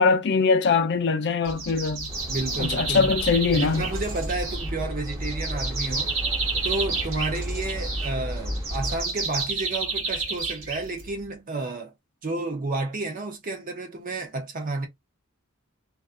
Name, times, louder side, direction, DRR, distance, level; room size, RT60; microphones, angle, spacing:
voice 1, 0.0-2.1 2.6-3.8, left 4 dB, 55° left, 0.5 m, -22 dB
sound 1, 1.5-11.3, right 4 dB, 65° right, 1.2 m, -31 dB
sound 2, 2.1-9.0, equal, 15° right, 0.9 m, -33 dB
voice 2, 2.3-3.1 3.5-6.1 6.6-11.9 12.2-14.9, right 2 dB, 40° right, 0.6 m, -31 dB
2.4 x 2.4 x 2.4 m
head